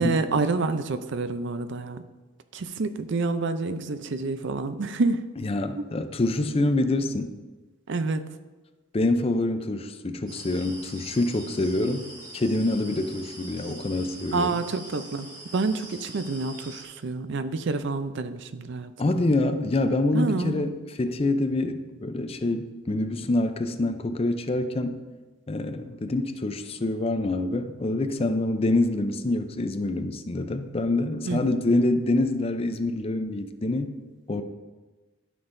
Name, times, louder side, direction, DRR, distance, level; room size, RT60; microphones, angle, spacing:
voice 1, 0.0-2.0 2.5-5.2 5.8-5.9 6.8-6.9 7.9-8.2 14.3-15.3 15.5-19.2 20.1-20.7 31.3-31.5, right 3 dB, 65° right, 11 dB, 0.5 m, -28 dB
voice 2, 5.4-7.3 8.9-12.1 12.3-14.6 19.0-24.9 25.5-33.9 34.3-34.4, left 2 dB, 30° left, 9 dB, 0.5 m, -26 dB
sound 1, 10.3-16.8, right 1 dB, 20° right, 1.7 m, -44 dB
13.5 x 6.1 x 2.6 m, 1.3 s
head